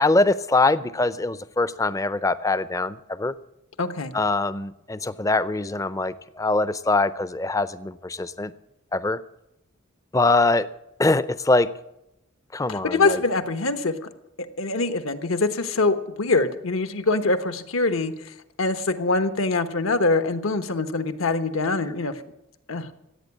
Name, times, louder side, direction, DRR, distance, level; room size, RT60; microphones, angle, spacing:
voice 1, 0.0-3.3 4.1-8.5 8.9-9.2 10.1-10.7 11.0-11.7 12.5-13.2, left 2 dB, 15° left, 16 dB, 0.5 m, -23 dB
voice 2, 3.8-4.1 12.7-13.9 14.4-22.1 22.7-22.9, left 3 dB, 80° left, 10 dB, 1.2 m, -24 dB
16.0 x 8.8 x 8.4 m, 0.86 s
head